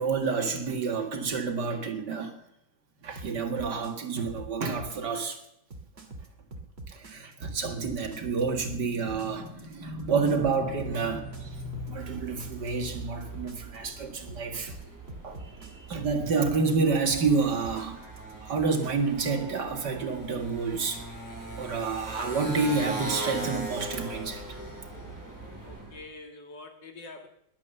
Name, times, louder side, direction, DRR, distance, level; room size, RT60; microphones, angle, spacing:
voice 1, 0.0-2.4 3.0-5.4 6.9-14.8 15.2-18.1 18.4-21.0 21.6-24.6, right 4 dB, 65° right, 2.5 m, -29 dB
sound 1, 3.2-18.9, right 2 dB, 35° right, 2.4 m, -44 dB
Motorcycle, 10.7-26.0, right 2 dB, 10° right, 7.7 m, -40 dB
voice 2, 25.6-27.3, left 2 dB, 75° left, 2.7 m, -45 dB
21.0 x 8.6 x 6.8 m
omnidirectional pair, 2.0 m